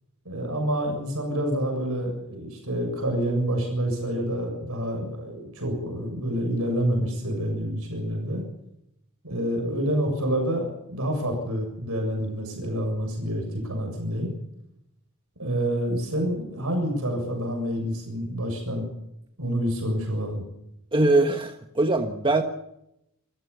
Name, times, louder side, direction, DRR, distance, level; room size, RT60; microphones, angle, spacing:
voice 1, 0.3-8.4 9.2-14.3 15.4-18.8 19.4-20.4, equal, 70° right, 3 dB, 7.2 m, -28 dB
voice 2, 20.9-22.4, right 2 dB, 25° right, 5 dB, 1.4 m, -22 dB
29.0 x 14.5 x 7.1 m, 0.81 s
head